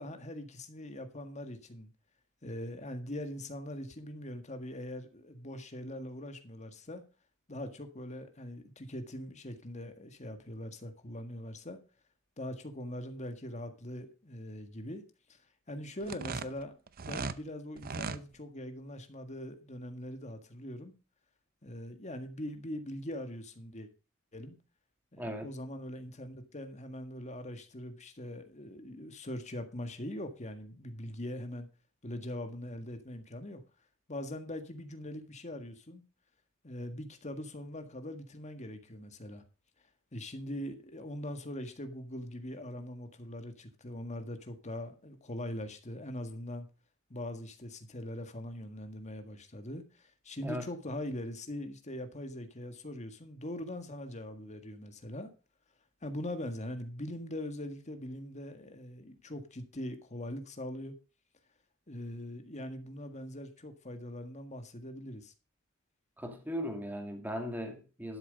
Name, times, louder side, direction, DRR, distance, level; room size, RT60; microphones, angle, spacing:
voice 1, 0.0-1.9 2.4-7.0 7.5-11.8 12.4-15.0 15.3-15.4 15.7-16.8 17.1-20.9 21.6-23.9 24.3-24.6 25.1-31.7 32.0-33.6 34.1-36.0 36.6-39.4 40.1-46.7 47.1-55.3 56.0-61.0 61.9-65.3, left 1 dB, 35° left, 1.7 m, -42 dB
sound 1, 16.0-17.4 17.8-18.2, right 4 dB, 45° right, 0.7 m, -37 dB
voice 2, 25.2-25.5 50.4-50.7 66.2-68.2, equal, 10° right, 2.3 m, -38 dB
12.0 x 7.4 x 5.3 m
head